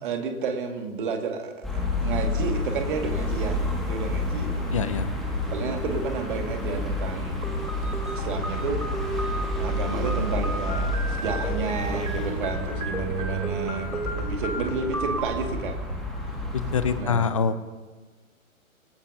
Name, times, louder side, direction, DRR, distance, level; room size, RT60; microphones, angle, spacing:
voice 1, 0.0-4.9 5.5-7.6 8.1-9.2 9.5-15.8 17.0-17.4, right 4 dB, 35° right, 4 dB, 2.2 m, -31 dB
sound 1, 1.6-17.0, left 1 dB, ahead, 2.0 m, -29 dB
voice 2, 4.7-5.1 16.5-17.6, left 6 dB, 25° left, 13 dB, 0.6 m, -25 dB
sound 2, 7.4-15.4, right 2 dB, 90° right, 2.7 m, -34 dB
27.0 x 19.0 x 2.8 m, 1.3 s
figure-of-eight pair, 130°, 42 cm